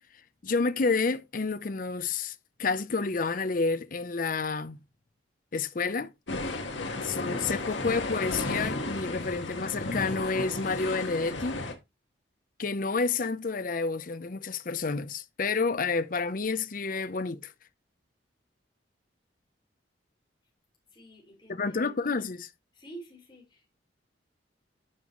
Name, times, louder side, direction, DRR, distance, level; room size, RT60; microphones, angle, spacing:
voice 1, 0.4-4.8 5.5-6.1 7.0-11.6 12.6-17.5 21.5-22.5, left 4 dB, 45° left, 0.6 m, -29 dB
sound 1, 6.3-11.7, left 2 dB, 80° left, 1.5 m, -33 dB
voice 2, 20.9-21.9 22.7-23.7, right 2 dB, 25° left, 4.2 m, -49 dB
9.6 x 5.6 x 3.0 m
head